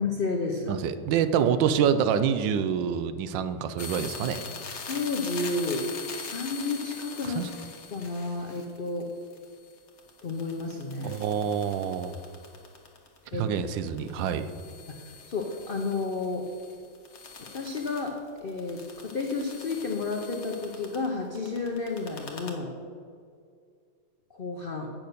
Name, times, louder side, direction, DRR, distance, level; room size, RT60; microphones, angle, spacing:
voice 1, 0.0-0.7 4.9-5.9 6.2-7.5 7.9-9.1 10.2-11.1 13.3-13.7 14.9-16.5 17.5-22.7 24.3-24.9, left 3 dB, 65° left, 2 dB, 0.5 m, -31 dB
voice 2, 0.7-4.4 7.2-7.5 11.0-12.1 13.4-14.5, right 8 dB, 80° right, 11 dB, 1.3 m, -26 dB
Network router sound with an induction microphone, 3.8-13.4 13.7-21.1 21.3-22.5, left 5 dB, 40° left, 1.2 m, -43 dB
8.4 x 6.2 x 6.6 m, 2.2 s
omnidirectional pair, 2.1 m